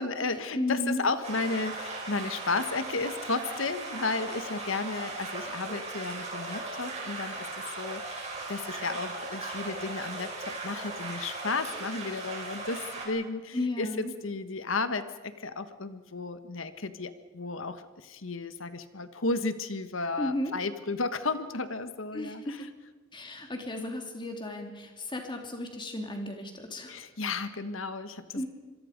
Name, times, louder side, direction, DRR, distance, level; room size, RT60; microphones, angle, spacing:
voice 1, 0.0-7.5 7.8-22.7 23.8-23.9 26.9-28.4, left 3 dB, 85° left, 11 dB, 1.4 m, -33 dB
voice 2, 0.6-1.0 13.5-14.1 20.2-20.5 22.1-22.7 23.1-27.0 28.3-28.5, left 1 dB, 25° left, 3 dB, 3.1 m, -34 dB
sound 1, 1.2-13.1, right 3 dB, 35° right, 6.1 m, -38 dB
26.0 x 22.5 x 5.3 m, 1.3 s
head